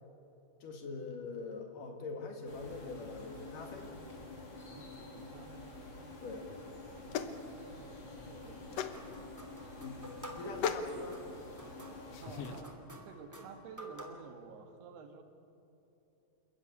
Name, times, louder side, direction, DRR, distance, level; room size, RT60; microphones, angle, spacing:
voice 1, 0.6-3.9 6.2-6.5 9.8-11.2, left 3 dB, 60° left, 4 dB, 3.5 m, -43 dB
sound 1, 2.4-12.6, left 2 dB, 30° left, 3.8 m, -49 dB
voice 2, 4.6-5.8 7.8-8.9 12.2-15.2, right 5 dB, 85° right, 6 dB, 3.8 m, -51 dB
sound 2, 6.5-12.6, left 6 dB, 85° left, 1.4 m, -41 dB
sound 3, 8.9-14.3, equal, 5° right, 1.6 m, -51 dB
28.0 x 14.5 x 9.8 m, 2.9 s
omnidirectional pair, 4.5 m